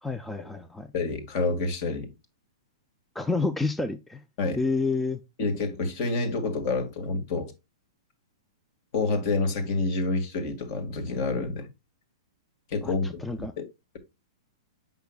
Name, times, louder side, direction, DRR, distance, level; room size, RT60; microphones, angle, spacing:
voice 1, 0.0-0.9 3.1-4.2 4.6-5.2 12.8-13.5, left 3 dB, 5° left, 0.4 m, -29 dB
voice 2, 0.9-2.1 4.4-4.6 5.4-7.5 8.9-11.7 12.7-13.2 13.6-13.7, left 3 dB, 40° left, 2.0 m, -28 dB
8.1 x 5.7 x 2.3 m
hypercardioid pair, 155°, 3 cm